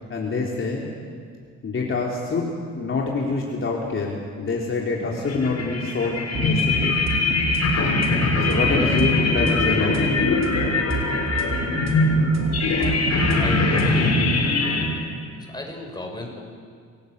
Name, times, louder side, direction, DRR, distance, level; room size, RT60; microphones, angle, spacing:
voice 1, 0.1-0.9 1.6-7.0 8.4-10.1, left 3 dB, 40° left, -2 dB, 3.6 m, -26 dB
sound 1, 5.2-14.9, left 2 dB, 60° left, 6.2 m, -22 dB
sound 2, 6.3-13.9, right 4 dB, 60° right, 4.1 m, -30 dB
voice 2, 13.4-14.6 15.3-16.4, left 1 dB, 15° left, 1 dB, 6.0 m, -35 dB
27.5 x 17.5 x 8.2 m, 2.1 s
cardioid pair, 90°, 30 cm